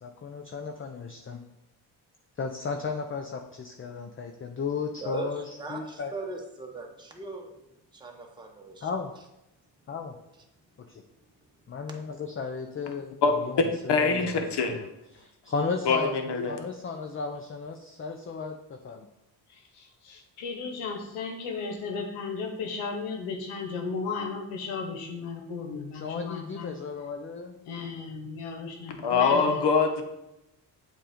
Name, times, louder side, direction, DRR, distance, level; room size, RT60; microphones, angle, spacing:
voice 1, 0.0-1.4 2.4-6.1 8.8-9.1 9.9-10.2 11.7-14.9 15.1-16.1 16.5-19.1 25.9-27.6, left 5 dB, 25° left, 4 dB, 0.5 m, -35 dB
voice 2, 5.0-7.5 7.9-8.9, right 3 dB, 10° right, 1 dB, 1.0 m, -39 dB
voice 3, 13.9-14.8 15.9-16.6 29.0-30.0, left 4 dB, 55° left, 5 dB, 1.0 m, -24 dB
voice 4, 19.7-26.7 27.7-29.6, left 4 dB, 85° left, 3 dB, 1.0 m, -35 dB
7.4 x 2.6 x 5.0 m, 0.89 s
supercardioid pair, 55°, 49 cm